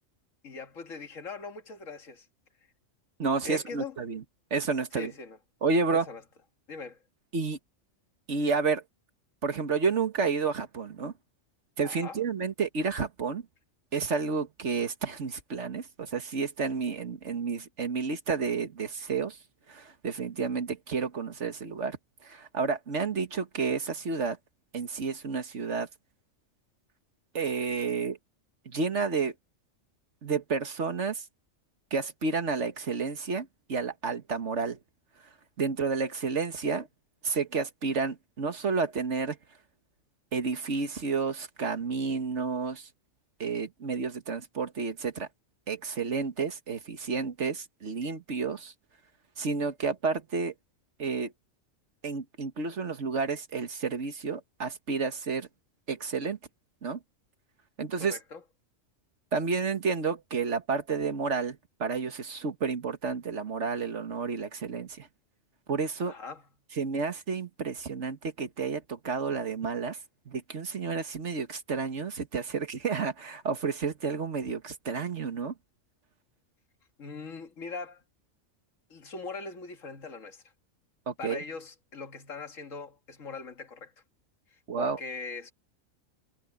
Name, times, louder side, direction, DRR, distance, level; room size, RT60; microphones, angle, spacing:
voice 1, 0.4-2.3 3.4-4.0 4.9-5.4 5.9-6.2 6.7-7.0 11.8-12.2 58.0-58.4 66.0-66.5 77.0-78.0 78.9-80.4 81.2-83.9 84.5-85.5, left 4 dB, 80° left, 2.1 m, -41 dB
voice 2, 3.2-4.2 4.5-5.1 5.6-6.1 7.3-7.6 8.3-8.8 9.4-11.1 11.8-13.4 13.9-19.4 19.7-22.0 22.2-24.4 24.7-25.9 27.3-28.2 28.7-29.3 30.2-31.3 31.9-34.8 35.6-36.9 37.2-39.4 40.3-42.9 43.4-45.3 45.7-48.7 49.4-50.5 51.0-51.3 52.0-55.5 55.9-56.4 56.8-57.0 57.8-58.2 59.3-65.1 65.7-66.2 66.8-70.0 70.3-75.5 81.1-81.4 84.7-85.0, right 5 dB, 65° right, 1.8 m, -30 dB
omnidirectional pair, 1.3 m